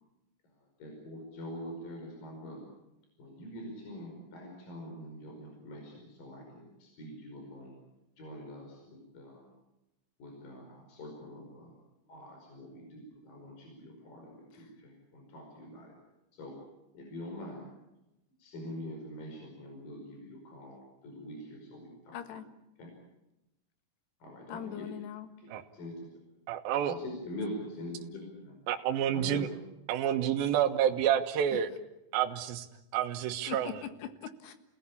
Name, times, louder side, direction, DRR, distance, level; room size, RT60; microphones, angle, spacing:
voice 1, 0.8-2.7 3.2-7.8 8.2-9.5 10.2-11.8 12.1-15.9 16.4-16.6 16.9-17.7 18.4-22.2 22.8-22.9 24.2-24.9 25.7-26.0 26.8-28.6 29.1-29.5, left 1 dB, 55° left, 1 dB, 6.8 m, -44 dB
voice 2, 22.1-22.5 24.5-25.3 31.5-31.6 33.5-34.5, left 10 dB, 90° left, 8 dB, 3.8 m, -41 dB
voice 3, 26.5-26.9 28.7-29.5 29.9-31.7 32.1-32.7 32.9-33.7, right 10 dB, 70° right, 4 dB, 3.0 m, -29 dB
29.5 x 18.5 x 8.5 m, 0.93 s
omnidirectional pair, 4.7 m